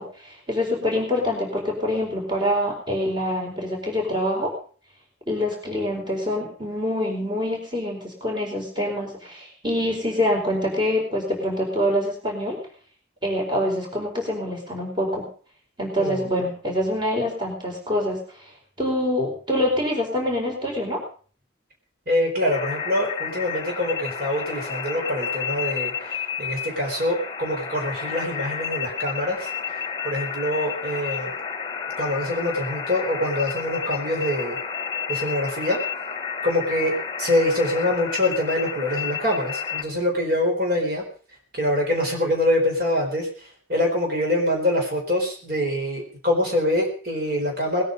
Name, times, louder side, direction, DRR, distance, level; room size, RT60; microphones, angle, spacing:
voice 1, 0.0-4.5 5.3-12.6 13.2-15.3 15.8-18.5 18.8-21.0, left 1 dB, 25° right, 0 dB, 4.6 m, -25 dB
voice 2, 22.1-31.3 32.0-34.6 35.1-35.8 36.4-36.9 37.2-41.0 41.5-47.8, left 1 dB, 50° right, 0 dB, 4.4 m, -25 dB
sound 1, 22.5-39.8, left 7 dB, 25° left, 1.2 m, -31 dB
20.5 x 9.6 x 5.3 m, 0.42 s
head